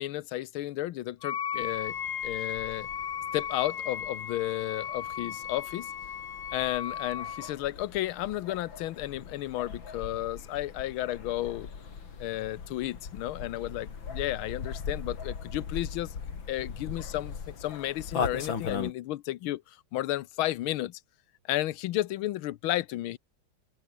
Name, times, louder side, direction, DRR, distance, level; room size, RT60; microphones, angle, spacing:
voice 1, 0.0-2.0 2.2-2.9 3.3-5.9 6.5-11.7 12.2-16.1 16.5-21.0 21.5-23.2, left 15 dB, 90° left, 1.6 m, -33 dB
Wind instrument woodwind instrument, 1.2-7.5, left 8 dB, 45° left, 1.2 m, -36 dB
sound 1, 1.5-18.9, left 6 dB, 70° left, 3.3 m, -40 dB
open air
omnidirectional pair, 2.2 m